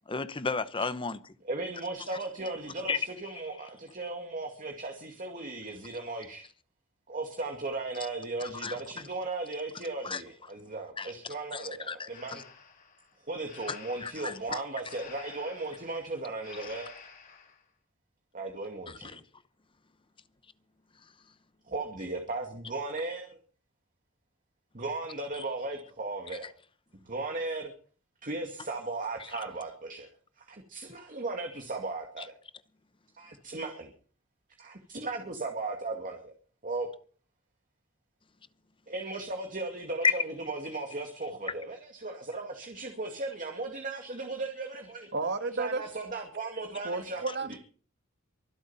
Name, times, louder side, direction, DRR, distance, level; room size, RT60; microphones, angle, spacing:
voice 1, 0.1-1.3 2.9-3.0 8.4-8.8 10.0-10.2 11.0-11.1 11.5-12.4 13.7-13.8 14.0-14.6 18.9-19.2 40.0-40.1, left 5 dB, 25° left, 0.9 m, -32 dB
voice 2, 1.4-6.5 7.1-12.4 13.3-17.0 18.3-19.2 21.7-23.4 24.7-26.5 27.0-27.7 28.2-30.1 30.4-32.3 33.1-33.9 34.6-36.3 36.6-36.9 38.9-45.1 45.5-47.6, right 3 dB, 40° right, 2.3 m, -36 dB
Breathing, 12.1-17.6, left 5 dB, 45° left, 4.8 m, -51 dB
voice 3, 45.1-45.8 46.8-47.6, right 3 dB, 55° right, 1.7 m, -32 dB
24.0 x 8.1 x 5.6 m
head